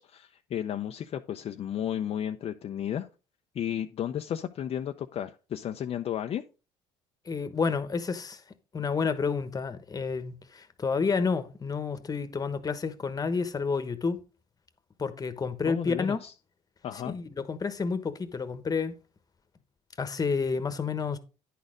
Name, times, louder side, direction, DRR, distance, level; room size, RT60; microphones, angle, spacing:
voice 1, 0.0-3.1 3.5-6.4 15.7-16.3 16.8-17.2, left 10 dB, 50° left, 0.6 m, -33 dB
voice 2, 7.3-8.4 8.7-14.2 15.0-16.2 17.0-19.0 20.0-21.2, left 5 dB, 30° left, 1.2 m, -30 dB
10.0 x 4.2 x 5.0 m
supercardioid pair, 80°, 13 cm